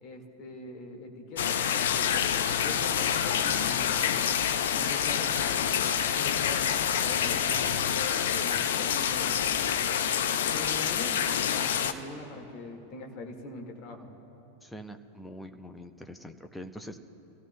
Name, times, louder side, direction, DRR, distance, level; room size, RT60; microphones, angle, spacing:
voice 1, 0.0-2.4 2.6-4.3 4.7-5.7 6.2-9.5 10.5-14.1, left 2 dB, 40° left, 2 dB, 1.9 m, -42 dB
sound 1, 1.4-11.9, left 8 dB, 60° left, 0.6 m, -27 dB
voice 2, 14.6-17.0, equal, 5° left, 6 dB, 0.7 m, -44 dB
25.0 x 15.5 x 2.3 m, 2.9 s
figure-of-eight pair, 90°, 0 cm